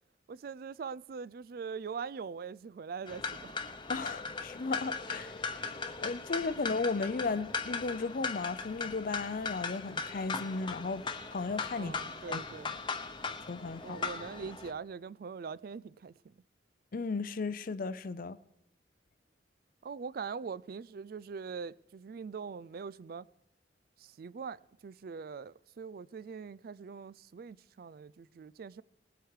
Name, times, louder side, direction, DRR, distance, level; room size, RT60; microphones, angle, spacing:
voice 1, 0.3-3.6 11.7-12.7 13.8-16.4 19.8-23.3 24.0-28.8, right 5 dB, 55° right, 0.4 m, -42 dB
sound 1, 3.1-14.7, left 4 dB, 25° left, 0.9 m, -38 dB
voice 2, 3.9-5.3 6.0-11.0 11.3-11.9 12.3-12.4 13.5-14.0 16.9-18.4, left 4 dB, 50° left, 0.5 m, -35 dB
20.0 x 7.9 x 4.8 m
head